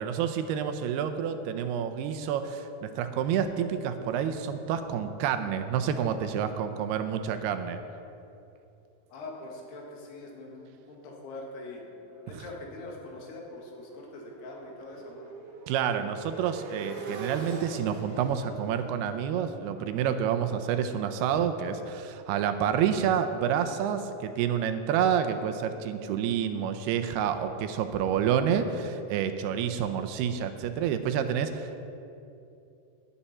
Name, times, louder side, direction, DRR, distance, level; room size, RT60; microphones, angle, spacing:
voice 1, 0.0-7.8 12.3-12.4 15.7-31.8, right 8 dB, 85° right, 8 dB, 2.7 m, -28 dB
voice 2, 9.1-11.8 12.3-15.3, left 2 dB, 85° left, -1 dB, 3.8 m, -43 dB
Motorcycle, 11.7-21.5, right 3 dB, 60° right, 3.1 m, -43 dB
18.0 x 10.0 x 4.3 m, 2.8 s
omnidirectional pair, 4.6 m